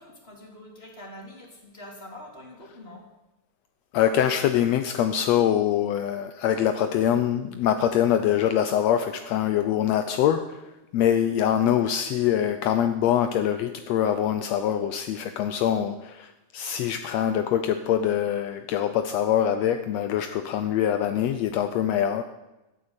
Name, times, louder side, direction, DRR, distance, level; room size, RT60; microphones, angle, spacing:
voice 1, 0.0-3.0, left 1 dB, 20° left, 1 dB, 3.2 m, -44 dB
voice 2, 3.9-10.6 10.9-22.2, left 10 dB, 80° left, 9 dB, 1.5 m, -24 dB
15.0 x 9.1 x 9.7 m, 1.0 s
omnidirectional pair, 3.8 m